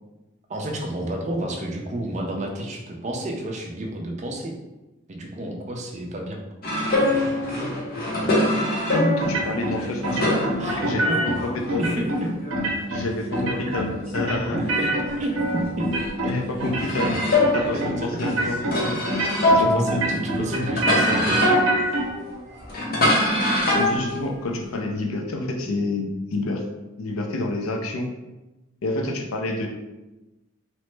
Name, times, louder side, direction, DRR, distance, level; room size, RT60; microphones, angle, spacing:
voice 1, 0.5-4.5 5.1-6.4 10.6-11.2 11.8-12.3 12.9-13.0 13.6-13.7 14.5-14.9 15.2-15.4 15.8-15.9 16.2-16.3 16.8-17.1 17.7-18.1 18.8-19.0 19.3-21.4, right 1 dB, 35° right, 1 dB, 0.4 m, -30 dB
sound 1, 6.6-11.9 12.2-15.6 15.9-24.8, left 1 dB, 45° left, 0.6 m, -25 dB
voice 2, 8.9-11.1 11.5-11.8 12.9-13.9 14.1-14.6 16.2-18.6 19.4-19.8 23.7-26.6 27.0-28.1 28.8-29.7, left 2 dB, 90° left, 2 dB, 0.5 m, -28 dB
sound 2, 9.2-9.8 10.0-11.4 11.7-12.2 12.5-13.0 13.3-13.9 14.1-16.3 16.6-17.1 17.4-17.9 18.2-18.7 19.1-19.6 19.9-22.0, right 1 dB, 90° right, 0.7 m, -25 dB
2.9 x 2.0 x 3.2 m, 1.0 s
head